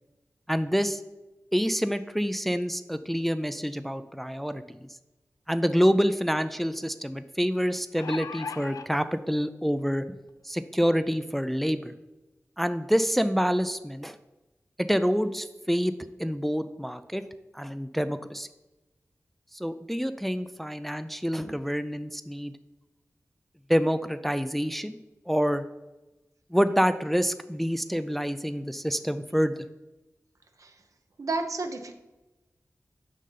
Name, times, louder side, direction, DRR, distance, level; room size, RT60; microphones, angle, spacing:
voice 1, 0.5-1.0 1.5-4.9 5.5-10.2 10.4-11.9 12.6-14.2 14.8-15.9 16.2-17.2 17.5-18.5 19.5-22.5 23.7-25.0 25.3-25.6 26.5-29.5, equal, 5° left, 11 dB, 0.4 m, -27 dB
sound 1, 7.7-8.9 9.8-9.9 10.3-10.4, left 5 dB, 80° left, 0.4 m, -37 dB
voice 2, 31.2-31.9, right 3 dB, 65° right, 6 dB, 0.7 m, -31 dB
6.4 x 5.4 x 3.9 m, 1.0 s
cardioid pair, 45°, 6 cm